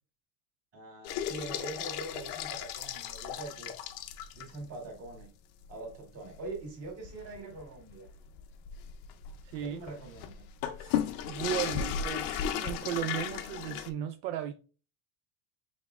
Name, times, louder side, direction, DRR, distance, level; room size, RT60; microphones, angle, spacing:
voice 1, 0.7-3.7 4.3-5.3 5.7-8.1 9.6-10.5, right 3 dB, 35° right, 1.7 m, -43 dB
sound 1, 1.0-4.6 5.1-5.2 5.6-5.7 6.2-13.9, left 9 dB, 55° left, 0.6 m, -36 dB
voice 2, 9.4-9.8 10.8-14.5, right 11 dB, 75° right, 0.5 m, -36 dB
5.4 x 3.6 x 2.3 m
cardioid pair, 160°, 41 cm